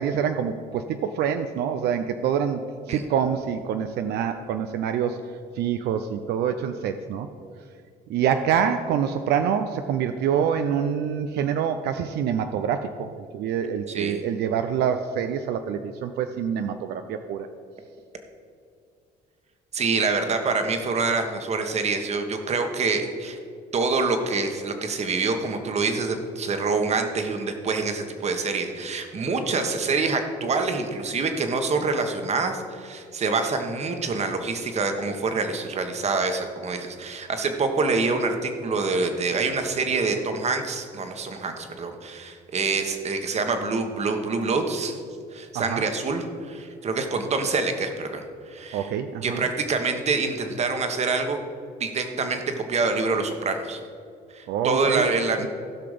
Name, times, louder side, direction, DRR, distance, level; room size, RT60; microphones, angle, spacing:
voice 1, 0.0-2.6 2.9-5.2 5.6-7.3 8.1-17.5 45.5-45.8 48.7-49.4 54.5-55.1, right 8 dB, 75° right, 8 dB, 0.6 m, -26 dB
voice 2, 13.9-14.2 19.7-23.4 23.7-45.0 45.3-48.9 49.2-51.4 51.8-53.8 54.3-55.5, right 4 dB, 40° right, 6 dB, 1.3 m, -26 dB
16.0 x 5.9 x 5.1 m, 2.4 s
cardioid pair, 110°, 17 cm